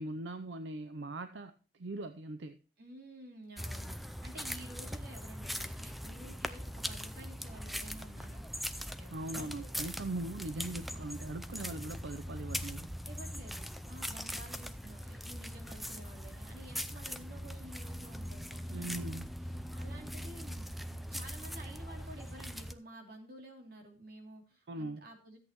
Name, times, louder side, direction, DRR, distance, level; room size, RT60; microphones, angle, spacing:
voice 1, 0.0-2.6 9.1-12.9 18.7-19.3 24.7-25.0, right 2 dB, 80° right, 10 dB, 0.6 m, -40 dB
voice 2, 2.8-8.5 8.9-9.7 13.0-19.1 19.7-25.4, right 1 dB, 55° right, 2 dB, 2.8 m, -52 dB
sound 1, 3.6-22.7, equal, ahead, 0.4 m, -41 dB
sound 2, 13.2-22.7, equal, 40° right, 3.5 m, -65 dB
13.5 x 8.4 x 3.0 m, 0.38 s
head